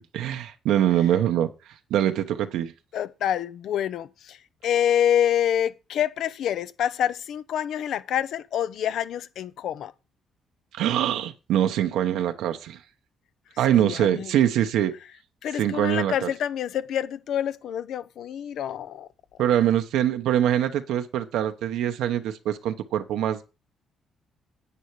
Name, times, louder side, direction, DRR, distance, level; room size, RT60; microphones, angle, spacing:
voice 1, 0.0-1.5 1.9-2.7 10.7-12.8 13.6-14.9 15.6-16.3 19.4-23.5, right 11 dB, 85° right, 0.9 m, -23 dB
voice 2, 2.9-4.4 4.6-9.9 13.8-14.3 15.4-19.1, left 10 dB, 75° left, 0.7 m, -27 dB
9.9 x 8.6 x 4.7 m
cardioid pair, 90°, 0 cm